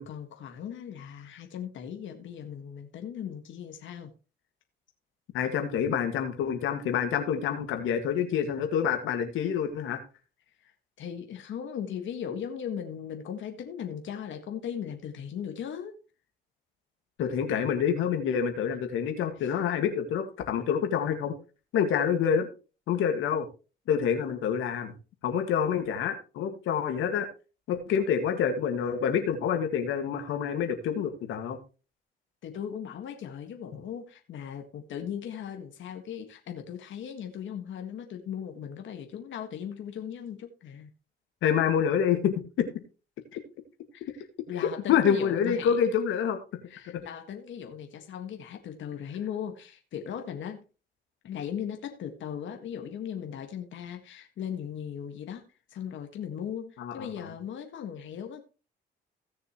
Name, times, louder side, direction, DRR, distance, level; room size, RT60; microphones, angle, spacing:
voice 1, 0.0-4.1 10.6-10.7 11.0-15.9 19.4-19.5 32.4-40.9 43.9-45.8 46.7-50.7 51.2-55.4 55.7-58.4, left 8 dB, 70° left, 1.8 m, -38 dB
voice 2, 5.3-10.0 17.2-21.3 21.7-22.5 22.9-23.5 23.9-24.9 25.2-27.3 27.7-31.6 41.4-42.8 43.3-43.4 44.6-46.4 56.8-57.3, left 8 dB, 90° left, 1.9 m, -27 dB
17.0 x 6.7 x 3.1 m
cardioid pair, 90°, 20 cm